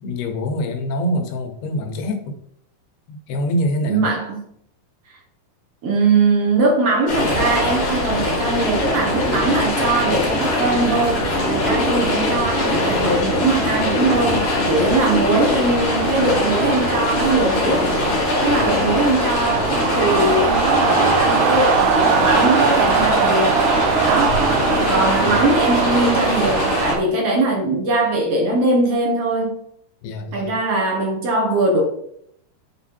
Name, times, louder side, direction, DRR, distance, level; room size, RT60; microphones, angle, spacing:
voice 1, 0.0-2.4 3.1-4.1 18.5-18.7 24.2-24.4 25.2-25.3 30.0-30.5, equal, 80° left, 4 dB, 2.9 m, -25 dB
voice 2, 3.9-4.4 5.8-17.9 18.4-23.6 24.0-24.5 24.9-29.6 30.3-31.8, right 2 dB, 60° right, -1 dB, 1.7 m, -21 dB
sound 1, 7.1-26.9, left 1 dB, 50° left, 3.0 m, -21 dB
sound 2, 14.3-27.0, right 7 dB, 85° right, 2.8 m, -22 dB
8.1 x 4.3 x 4.3 m, 0.71 s
omnidirectional pair, 4.5 m